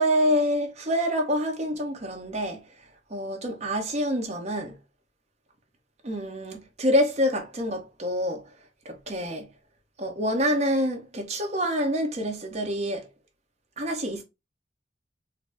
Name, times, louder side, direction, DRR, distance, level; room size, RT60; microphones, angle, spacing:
voice 1, 0.0-2.6 3.1-4.8 6.0-8.4 8.8-9.5 10.0-13.1 13.8-14.2, equal, 40° right, 0.9 m, -26 dB
3.9 x 2.0 x 3.4 m
head